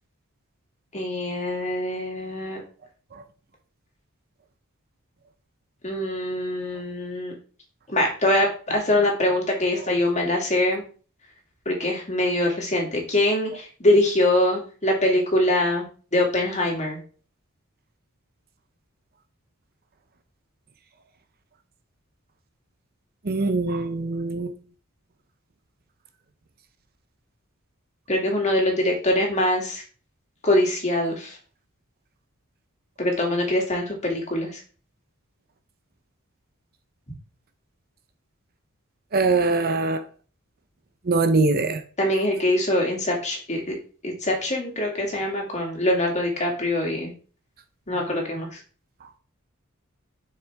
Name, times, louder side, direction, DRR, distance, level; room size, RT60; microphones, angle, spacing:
voice 1, 0.9-2.6 5.8-7.3 7.9-10.8 11.7-15.9 16.1-17.0 28.1-29.8 30.4-31.4 33.0-34.6 42.0-43.8 44.0-47.1 47.9-48.6, left 1 dB, 35° left, 2.4 m, -23 dB
voice 2, 23.2-24.5 39.1-40.0 41.1-41.8, right 3 dB, 45° right, 0.7 m, -22 dB
6.8 x 6.1 x 3.5 m
head